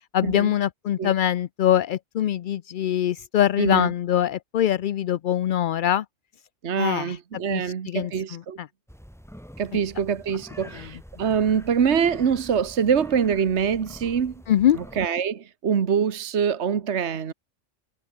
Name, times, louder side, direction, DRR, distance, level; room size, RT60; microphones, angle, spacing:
voice 1, 0.1-6.0 6.8-8.7 10.7-10.9 14.5-14.8, left 11 dB, 60° left, 0.5 m, -23 dB
voice 2, 3.6-3.9 6.6-8.6 9.6-14.3 14.7-17.3, right 7 dB, 65° right, 1.5 m, -24 dB
sound 1, 8.9-15.1, equal, ahead, 5.0 m, -45 dB
omnidirectional pair, 1.3 m